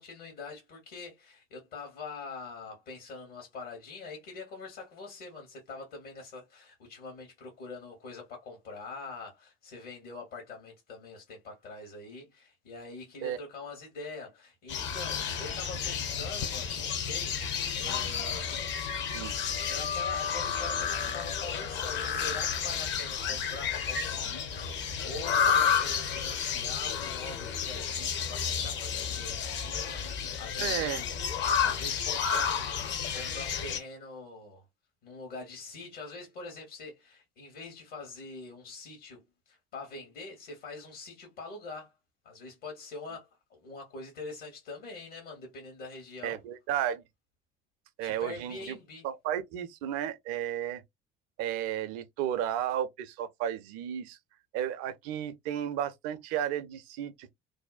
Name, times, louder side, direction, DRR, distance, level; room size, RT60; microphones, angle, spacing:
voice 1, 0.0-18.7 19.2-31.2 31.6-34.6 35.0-41.9 42.2-46.4 48.0-49.1, left 3 dB, 65° left, 1.1 m, -44 dB
sound 1, 14.7-33.8, left 7 dB, 40° left, 0.6 m, -31 dB
voice 2, 30.6-31.0 46.2-47.0 48.0-48.8 49.0-50.8 51.4-54.2 54.5-57.3, right 10 dB, 55° right, 0.5 m, -33 dB
2.6 x 2.1 x 2.3 m
figure-of-eight pair, 60°, 29 cm